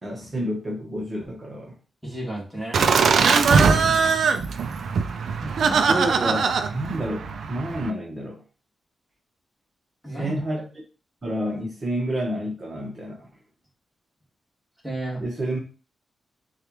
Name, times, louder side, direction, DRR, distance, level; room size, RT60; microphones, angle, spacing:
voice 1, 0.0-1.8 3.6-4.2 5.6-8.4 10.2-10.7 11.2-13.3 15.2-15.6, right 1 dB, 25° right, -3 dB, 1.1 m, -29 dB
voice 2, 2.0-2.9 5.4-5.8 10.0-10.6 14.8-15.2, right 1 dB, 5° left, -4 dB, 1.8 m, -33 dB
Laughter, 2.7-7.9, right 5 dB, 70° right, 0.4 m, -21 dB
6.5 x 2.4 x 3.1 m, 0.34 s
wide cardioid pair, 135°, 0 cm